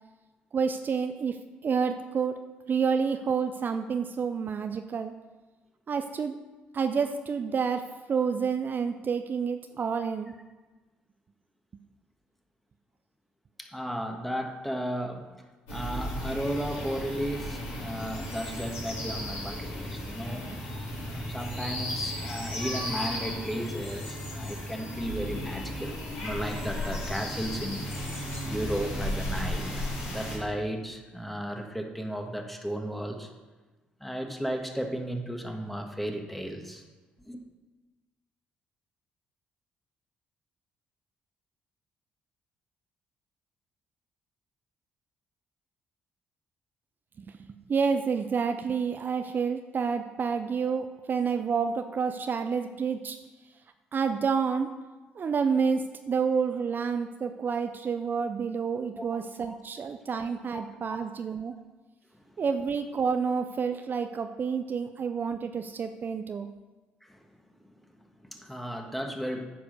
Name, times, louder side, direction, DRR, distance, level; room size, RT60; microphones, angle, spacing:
voice 1, 0.5-1.4 1.6-2.4 2.7-5.1 5.9-6.4 6.7-10.3 47.2-53.2 53.9-54.7 55.2-61.5 62.4-66.5, right 6 dB, 45° right, 7 dB, 0.5 m, -29 dB
voice 2, 13.6-15.3 15.7-20.5 21.1-27.9 28.4-29.7 30.1-33.3 34.0-36.8 37.2-37.4 59.0-59.2 59.5-59.6 60.5-61.0 62.1-62.3 67.0-67.3 67.6-69.4, equal, 5° left, 3 dB, 1.5 m, -35 dB
sound 1, 15.7-30.4, left 1 dB, 75° left, 3.4 m, -35 dB
9.9 x 4.9 x 6.5 m, 1.2 s
hypercardioid pair, 50°, 4 cm